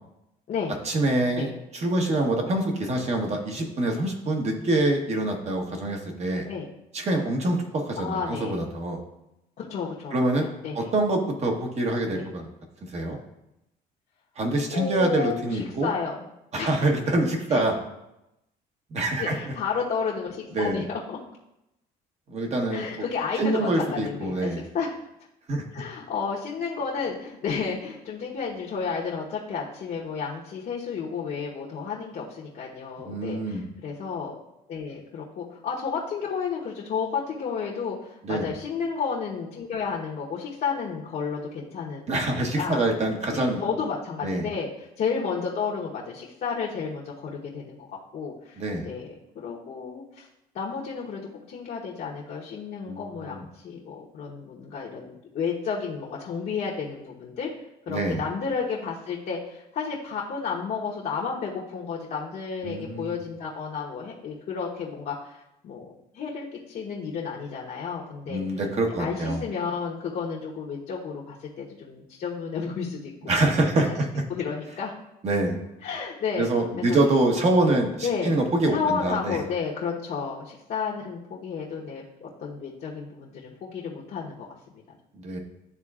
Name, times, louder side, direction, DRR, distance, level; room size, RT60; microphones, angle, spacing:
voice 1, 0.8-6.5 6.9-9.0 10.1-10.5 10.7-12.5 12.8-13.2 14.4-15.9 16.5-17.7 18.9-19.4 20.5-20.8 22.3-23.0 23.4-24.6 25.5-25.8 33.1-33.7 38.2-38.5 42.1-43.6 44.2-44.5 48.6-48.9 52.9-53.4 57.9-58.2 62.6-63.2 68.3-69.4 73.3-74.2 75.2-75.6 76.4-79.4 85.1-85.4, right 2 dB, 40° right, 2 dB, 1.2 m, -25 dB
voice 2, 8.0-8.6 9.6-10.9 12.1-12.3 14.7-16.2 16.5-16.9 17.5-17.6 19.2-21.2 22.7-25.0 25.7-34.4 34.7-42.1 42.3-42.8 43.3-47.8 48.1-50.3 50.5-57.5 57.9-65.9 66.1-68.4 69.0-73.1 73.5-73.6 74.3-74.9 75.8-76.5 76.9-77.0 77.4-77.5 78.0-78.3 78.7-84.5 84.7-84.8, left 5 dB, 55° left, -5 dB, 1.1 m, -32 dB
11.0 x 3.8 x 2.4 m, 0.88 s
cardioid pair, 110°, 17 cm